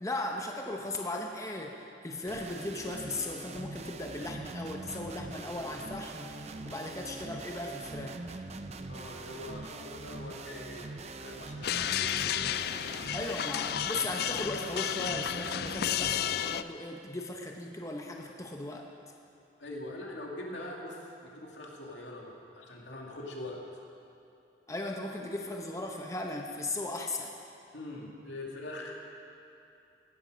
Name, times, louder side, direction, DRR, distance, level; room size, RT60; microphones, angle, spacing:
voice 1, 0.0-1.8 2.0-8.2 13.1-18.9 24.7-27.3, left 2 dB, 20° left, 1 dB, 0.9 m, -37 dB
sound 1, 2.3-16.6, right 3 dB, 40° right, 0.6 m, -43 dB
voice 2, 8.9-12.5 19.6-23.6 27.7-28.9, left 1 dB, 85° left, -2 dB, 2.5 m, -43 dB
sound 2, 11.6-16.6, left 11 dB, 60° left, 0.3 m, -32 dB
16.0 x 13.0 x 5.1 m, 2.7 s
head